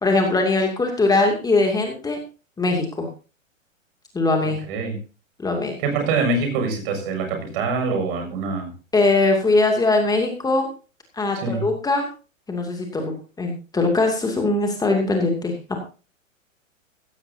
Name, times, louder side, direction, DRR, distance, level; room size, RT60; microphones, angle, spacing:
voice 1, 0.0-2.2 2.6-3.1 4.1-4.6 5.4-5.7 8.9-10.7 11.1-12.1 12.5-15.6, left 2 dB, 10° left, 2 dB, 2.6 m, -21 dB
voice 2, 5.8-8.7 11.3-11.7, right 4 dB, 45° right, 5 dB, 6.9 m, -24 dB
16.5 x 15.5 x 2.8 m, 0.34 s
figure-of-eight pair, 115°, 40 cm